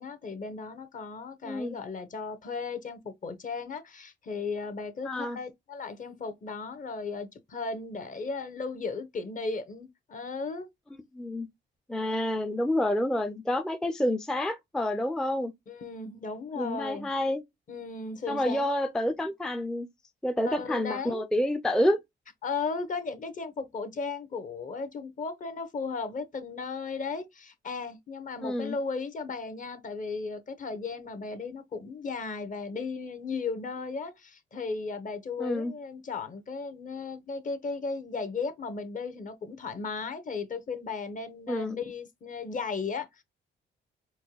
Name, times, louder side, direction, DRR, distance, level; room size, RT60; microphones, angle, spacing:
voice 1, 0.0-10.7 15.7-17.1 17.7-18.7 19.0-19.1 20.4-21.3 22.4-43.2, left 4 dB, 40° left, 0.9 m, -36 dB
voice 2, 1.4-1.8 5.0-5.4 11.1-11.5 11.9-15.5 16.6-17.4 18.3-19.9 20.2-22.0 28.4-28.8 35.4-35.7 41.5-41.8, left 1 dB, 5° left, 0.4 m, -28 dB
4.4 x 2.2 x 2.9 m
cardioid pair, 90°, 20 cm